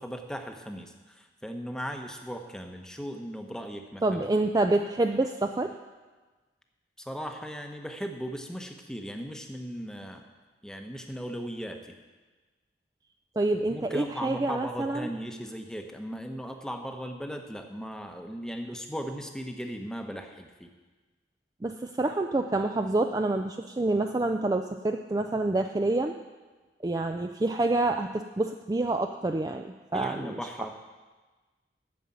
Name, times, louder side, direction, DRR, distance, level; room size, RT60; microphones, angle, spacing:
voice 1, 0.0-4.0 7.0-10.2 10.6-11.8 13.7-20.7 29.9-30.7, equal, 5° left, 4 dB, 0.8 m, -37 dB
voice 2, 4.0-5.7 13.4-15.1 21.6-26.2 26.8-30.4, right 2 dB, 20° right, 5 dB, 0.3 m, -27 dB
9.4 x 7.1 x 8.9 m, 1.3 s
head